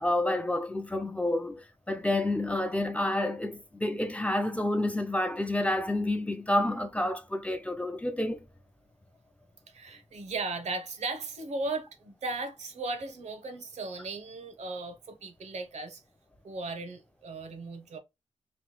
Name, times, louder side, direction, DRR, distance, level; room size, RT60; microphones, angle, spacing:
voice 1, 0.0-8.4, left 1 dB, 10° left, 0.3 m, -29 dB
voice 2, 9.7-16.0 16.4-18.0, right 3 dB, 75° right, 0.7 m, -36 dB
3.0 x 2.2 x 3.0 m
wide cardioid pair, 110°, 12 cm